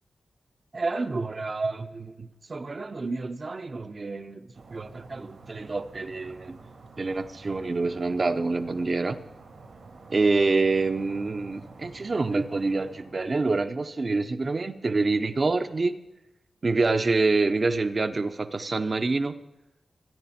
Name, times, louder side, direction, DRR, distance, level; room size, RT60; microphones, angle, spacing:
voice 1, 0.7-4.4 4.7-6.6 7.0-9.2 10.1-16.0 16.6-19.3, right 3 dB, 45° right, 9 dB, 0.9 m, -27 dB
sound 1, 4.5-13.5, right 3 dB, 85° right, 3.4 m, -49 dB
24.0 x 10.0 x 4.4 m, 0.92 s
wide cardioid pair, 95°, 0 cm